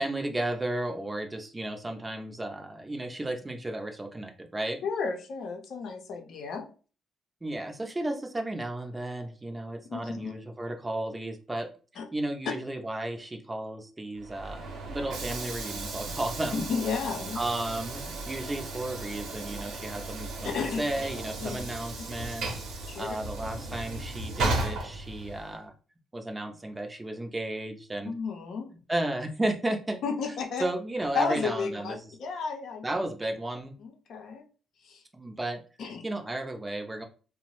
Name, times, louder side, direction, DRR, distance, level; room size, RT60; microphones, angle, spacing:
voice 1, 0.0-4.8 7.4-11.7 12.1-16.7 17.4-20.5 20.8-22.5 23.0-25.7 26.1-28.1 28.9-30.0 30.3-30.4 30.6-32.1 32.8-33.7 35.1-35.6 36.0-37.0, right 1 dB, 20° right, 5 dB, 0.5 m, -33 dB
voice 2, 4.8-6.7 9.9-10.3 12.0-12.1 16.5-17.4 20.5-20.8 21.4-21.5 22.9-23.1 28.0-28.7 30.0-30.6 31.1-32.9 33.8-34.4 34.8-35.0 35.8-36.0, left 5 dB, 70° left, 3 dB, 0.6 m, -32 dB
Train / Sliding door, 14.2-25.6, right 2 dB, 75° right, 0.7 m, -35 dB
2.8 x 2.0 x 3.0 m, 0.36 s
cardioid pair, 90°, 0 cm